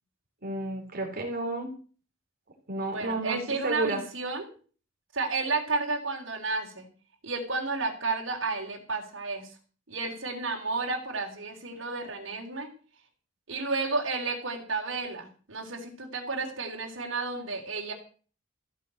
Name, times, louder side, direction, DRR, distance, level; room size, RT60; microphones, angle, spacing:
voice 1, 0.4-1.7 2.7-4.0, right 2 dB, 50° right, 4 dB, 3.4 m, -31 dB
voice 2, 2.9-4.5 5.1-6.9 7.2-9.6 9.9-12.7 13.5-17.9, right 3 dB, 75° right, 0 dB, 3.8 m, -32 dB
15.0 x 8.5 x 7.8 m, 0.40 s
head